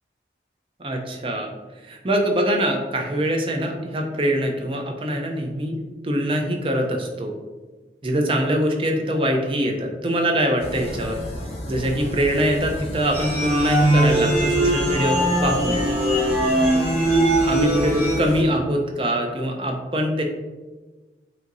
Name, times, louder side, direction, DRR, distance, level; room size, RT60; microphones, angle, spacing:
voice 1, 0.8-1.5 1.8-7.3 8.0-11.2 11.7-15.8 17.5-20.2, equal, 30° right, 2 dB, 0.5 m, -23 dB
sound 1, 10.6-18.4, equal, 35° left, 0.7 m, -33 dB
sound 2, 13.1-18.1, right 1 dB, 15° right, 1.4 m, -20 dB
7.6 x 2.7 x 2.6 m, 1.3 s
head